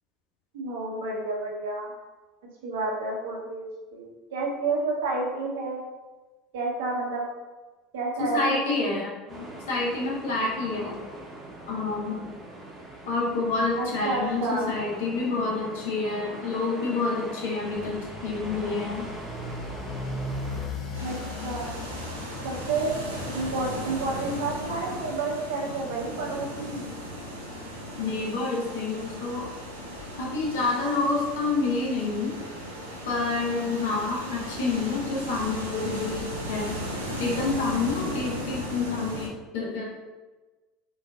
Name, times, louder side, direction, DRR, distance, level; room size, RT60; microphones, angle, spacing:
voice 1, 0.5-1.9 2.6-5.9 6.5-7.2 7.9-8.4 13.8-14.8 21.0-21.2 21.4-21.7 22.4-23.0 23.3-26.9, right 3 dB, 70° right, -3 dB, 0.8 m, -30 dB
voice 2, 8.2-11.0 11.7-12.3 13.1-19.1 28.0-29.5 30.2-32.4 33.0-36.8 37.2-39.8, left 3 dB, 70° left, -3 dB, 0.9 m, -28 dB
sound 1, 9.3-20.7, right 2 dB, 30° right, 0.9 m, -42 dB
Motorcycle, 17.5-23.5, left 2 dB, 45° left, 0.7 m, -37 dB
sound 2, 20.9-39.3, equal, 90° right, 0.5 m, -36 dB
4.0 x 2.4 x 2.4 m, 1.2 s
hypercardioid pair, 70°, 0 cm